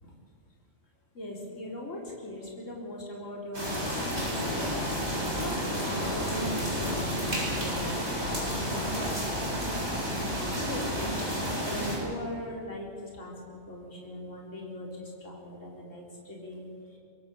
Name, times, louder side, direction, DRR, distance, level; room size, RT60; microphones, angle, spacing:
voice 1, 1.1-4.7 5.3-9.5 10.2-11.0 11.5-17.0, left 1 dB, 60° left, -2 dB, 4.7 m, -40 dB
sound 1, 3.5-12.0, equal, 50° right, 8.2 m, -31 dB
26.0 x 21.5 x 8.5 m, 2.3 s
omnidirectional pair, 1.4 m